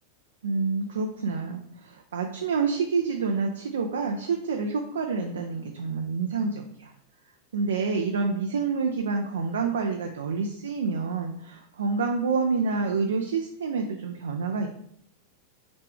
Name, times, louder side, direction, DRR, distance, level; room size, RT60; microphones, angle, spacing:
voice 1, 0.4-6.9 7.5-14.7, right 4 dB, 65° right, 4 dB, 0.4 m, -28 dB
3.2 x 3.0 x 3.4 m, 0.67 s
figure-of-eight pair, 90°, 0 cm